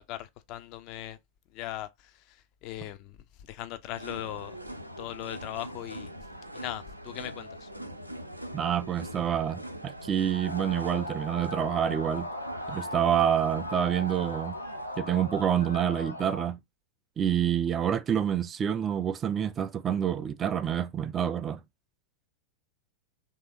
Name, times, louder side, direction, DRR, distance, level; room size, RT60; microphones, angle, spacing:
voice 1, 0.1-1.2 1.5-4.6 5.0-6.1 6.5-7.7, left 13 dB, 40° left, 0.4 m, -39 dB
sound 1, 3.9-15.7, equal, 90° right, 0.6 m, -43 dB
voice 2, 8.5-12.3 12.7-14.6 15.0-16.6 17.2-21.6, right 9 dB, 25° right, 0.3 m, -27 dB
sound 2, 10.3-16.5, equal, 90° left, 0.7 m, -38 dB
3.3 x 2.7 x 4.4 m
figure-of-eight pair, 90°, 0 cm